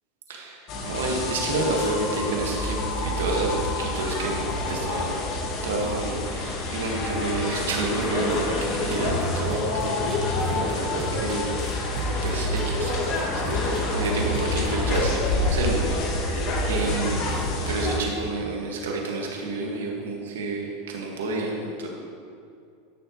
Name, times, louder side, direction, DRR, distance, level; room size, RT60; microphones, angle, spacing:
voice 1, 0.3-4.4 4.7-5.3 5.6-21.9, right 2 dB, 80° right, -1 dB, 1.8 m, -30 dB
sound 1, 0.7-18.0, left 2 dB, 50° left, 1.5 m, -27 dB
sound 2, 7.7-8.1 8.3-8.4 8.6-8.7 8.9-9.2 9.5-9.8 10.1-10.7 11.0-12.3 12.6-12.9 13.2-13.3 13.5-14.1 14.3-14.7 14.9-15.0, right 2 dB, 35° right, 2.0 m, -36 dB
13.5 x 6.7 x 3.2 m, 2.4 s
hypercardioid pair, 100°, 0 cm